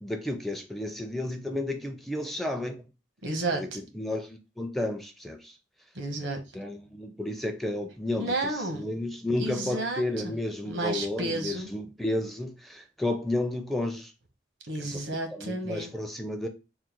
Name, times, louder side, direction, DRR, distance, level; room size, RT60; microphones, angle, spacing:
voice 1, 0.0-2.8 3.5-5.5 6.5-8.3 8.7-14.1 14.9-15.0 15.3-16.5, left 1 dB, ahead, 0.4 m, -32 dB
voice 2, 3.2-3.8 5.9-6.4 8.1-8.9 9.4-10.3 10.6-11.7 14.7-16.0, right 2 dB, 85° right, 0.9 m, -32 dB
3.7 x 2.2 x 4.4 m
head